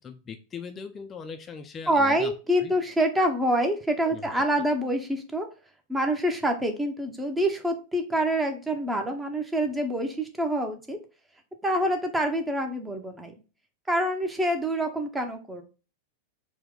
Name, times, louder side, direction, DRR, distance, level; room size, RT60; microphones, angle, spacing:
voice 1, 0.0-2.3 2.6-2.7 4.1-4.7, left 6 dB, 25° left, 7 dB, 0.4 m, -40 dB
voice 2, 1.9-5.5 5.9-11.0 11.6-13.3 13.9-15.6, right 1 dB, 10° right, 5 dB, 0.7 m, -26 dB
4.4 x 2.2 x 3.7 m, 0.33 s
figure-of-eight pair, 90°, 0 cm